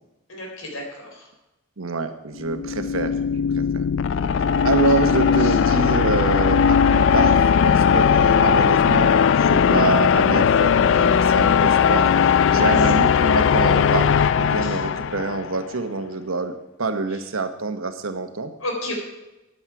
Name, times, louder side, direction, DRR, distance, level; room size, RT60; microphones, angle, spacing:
voice 1, 0.3-1.3 5.4-5.6 12.5-12.9 14.6-14.8 18.6-18.9, left 1 dB, 85° left, 1 dB, 3.9 m, -32 dB
voice 2, 1.8-3.9 4.6-12.1 12.5-16.5 16.8-18.5, right 3 dB, 80° right, 8 dB, 1.1 m, -26 dB
sound 1, 2.4-15.5, left 7 dB, 65° left, 0.4 m, -18 dB
13.5 x 9.7 x 4.8 m, 0.99 s
head